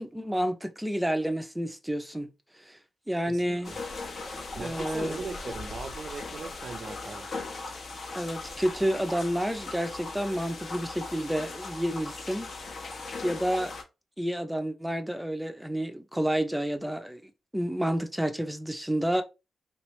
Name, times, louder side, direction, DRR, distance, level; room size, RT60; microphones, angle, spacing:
voice 1, 0.0-2.3 2.6-2.8 3.1-3.7 4.5-5.3 8.1-12.5 13.2-13.7 14.2-19.2, equal, 5° right, 0.5 m, -30 dB
voice 2, 3.3-3.8 4.5-7.3, right 5 dB, 55° right, 0.5 m, -39 dB
sound 1, 3.5-7.3 7.8-7.9 8.4-8.8, left 1 dB, 20° left, 1.1 m, -51 dB
sound 2, 3.6-13.8, left 3 dB, 65° left, 1.2 m, -39 dB
3.3 x 3.1 x 3.1 m
wide cardioid pair, 110°, 0 cm